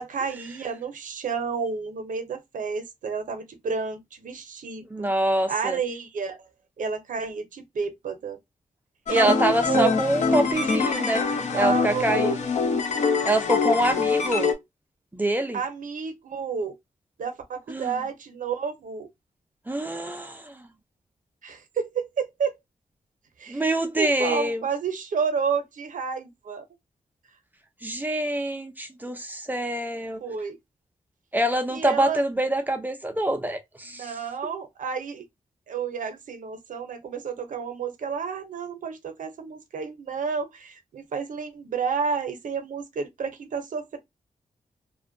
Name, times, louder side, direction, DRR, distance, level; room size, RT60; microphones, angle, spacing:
voice 1, 0.0-5.1 5.5-6.4 6.8-8.4 9.1-9.4 9.7-9.9 10.3-11.1 11.5-12.4 15.5-16.7 17.2-19.1 21.4-22.5 23.4-23.7 24.0-26.6 30.2-30.6 31.7-32.2 33.8-35.2 35.7-44.0, right 5 dB, 70° right, 0.6 m, -30 dB
voice 2, 4.9-5.8 9.1-11.2 11.5-12.4 13.2-14.5 15.1-15.6 17.7-18.0 19.7-20.6 23.5-24.6 27.8-30.2 31.3-34.1, right 1 dB, 15° right, 0.4 m, -25 dB
sound 1, 9.1-14.5, left 5 dB, 60° left, 0.6 m, -24 dB
2.5 x 2.1 x 2.5 m
wide cardioid pair, 140°, 14 cm